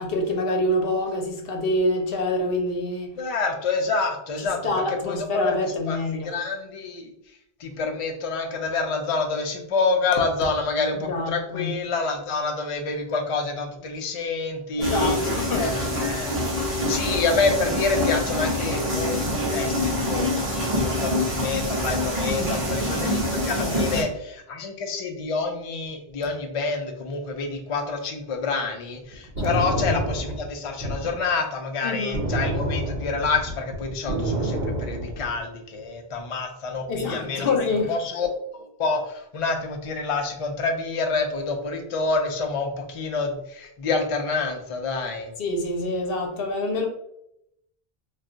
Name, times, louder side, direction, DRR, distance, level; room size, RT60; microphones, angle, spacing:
voice 1, 0.0-3.2 4.4-6.3 10.9-11.7 14.8-15.7 22.3-22.6 23.5-24.1 29.4-30.0 31.8-32.2 36.9-38.0 45.4-46.9, left 2 dB, 65° left, 3 dB, 0.8 m, -26 dB
voice 2, 3.2-4.6 4.9-5.6 5.9-7.1 7.6-15.1 15.5-16.4 16.7-38.3 38.5-45.3, left 4 dB, 50° left, 3 dB, 0.4 m, -27 dB
sound 1, 14.8-24.0, left 1 dB, 35° right, 0.8 m, -25 dB
sound 2, 29.1-31.2 32.1-35.4, right 1 dB, 70° right, 0.9 m, -28 dB
2.3 x 2.2 x 3.7 m, 0.77 s
omnidirectional pair, 1.1 m